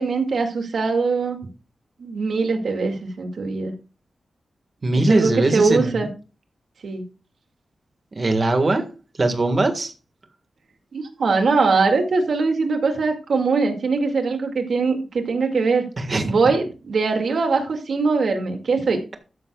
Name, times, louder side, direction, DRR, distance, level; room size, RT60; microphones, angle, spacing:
voice 1, 0.0-1.4 2.0-3.7 5.1-6.1 6.8-7.0 10.9-15.9 16.2-19.0, right 4 dB, 60° right, 4 dB, 2.2 m, -21 dB
voice 2, 4.8-6.1 8.2-8.8 9.2-9.9 16.0-16.2, right 2 dB, 35° right, 6 dB, 1.7 m, -20 dB
13.5 x 11.0 x 2.4 m, 0.33 s
wide cardioid pair, 170°, 0 cm